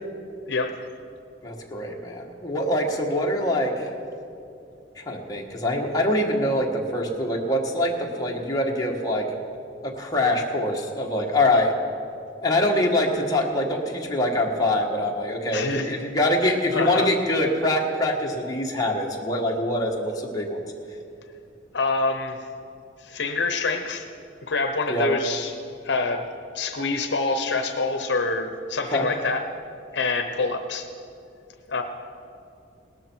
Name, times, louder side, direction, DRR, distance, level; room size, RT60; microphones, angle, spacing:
voice 1, 1.4-3.9 5.1-9.3 9.8-11.7 12.4-20.6 24.9-25.1 28.9-29.1, left 1 dB, 20° left, -1 dB, 1.5 m, -24 dB
voice 2, 15.5-16.1 16.4-17.1 21.7-22.4 23.0-24.1 24.5-25.6 25.8-26.2 26.5-29.5 29.9-30.9 31.7-31.8, left 3 dB, 65° left, 7 dB, 0.8 m, -26 dB
18.0 x 13.0 x 4.6 m, 2.6 s
head